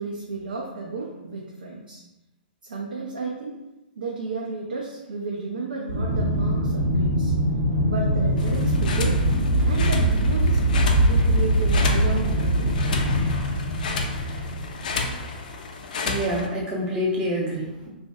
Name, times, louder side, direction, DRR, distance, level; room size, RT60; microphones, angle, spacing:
voice 1, 0.0-2.0 2.6-3.6 4.0-7.3 7.8-9.2 9.6-10.6 11.0-12.7, right 3 dB, 70° right, -3 dB, 0.4 m, -33 dB
Aircraft, 5.9-15.3, right 1 dB, 85° right, 0.9 m, -22 dB
sound 1, 8.4-16.5, left 4 dB, 55° left, 0.3 m, -32 dB
voice 2, 16.0-17.9, equal, 15° right, -4 dB, 0.6 m, -27 dB
2.5 x 2.2 x 2.2 m, 0.98 s
figure-of-eight pair, 115°, 5 cm